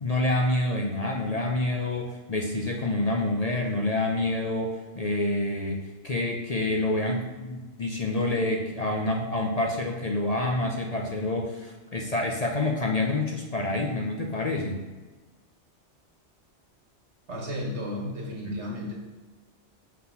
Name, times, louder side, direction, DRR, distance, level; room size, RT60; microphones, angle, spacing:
voice 1, 0.0-14.8 18.4-18.6, left 2 dB, 40° left, 1 dB, 0.7 m, -27 dB
voice 2, 17.3-18.9, left 1 dB, 70° right, -1 dB, 1.9 m, -33 dB
6.0 x 3.9 x 5.9 m, 1.3 s
omnidirectional pair, 1.2 m